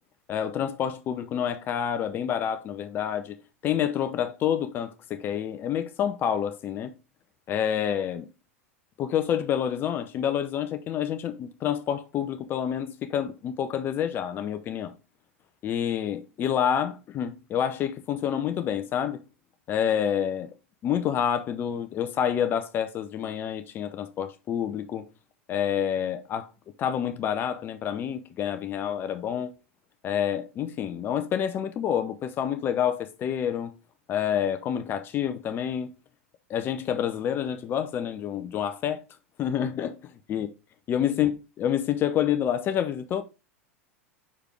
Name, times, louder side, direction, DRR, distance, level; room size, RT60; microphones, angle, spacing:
voice 1, 0.3-3.4 3.6-6.9 7.5-8.3 9.0-14.9 15.6-19.2 19.7-20.5 20.8-25.1 25.5-26.5 26.8-29.5 30.0-33.7 34.1-35.9 36.5-39.0 39.4-40.0 40.3-40.5 40.9-41.3 41.6-43.2, left 9 dB, 30° left, 0.6 m, -28 dB
6.0 x 4.9 x 3.3 m
figure-of-eight pair, 90°, 7 cm